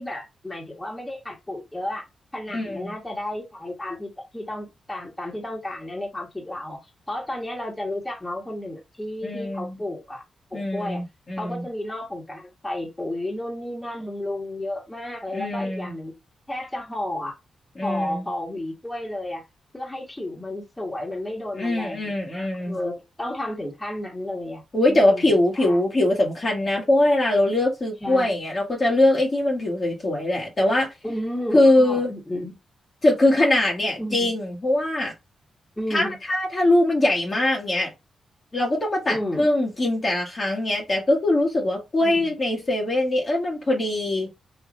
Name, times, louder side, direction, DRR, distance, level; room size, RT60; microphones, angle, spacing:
voice 1, 0.0-2.0 2.3-6.8 7.1-10.2 10.5-11.0 11.4-16.2 16.5-17.3 17.8-19.4 19.7-25.8 28.0-28.3 31.0-32.5 34.0-34.3 35.8-36.2 39.1-39.5 42.0-42.3, left 1 dB, 15° left, 1.5 m, -32 dB
voice 2, 2.5-2.9 9.2-9.8 10.5-11.6 15.3-15.9 17.7-18.3 21.6-22.8 24.7-30.9 31.5-32.1 33.0-35.1 35.9-37.9 38.5-44.3, left 1 dB, 45° left, 1.4 m, -22 dB
3.3 x 2.6 x 2.6 m
supercardioid pair, 45°, 0 cm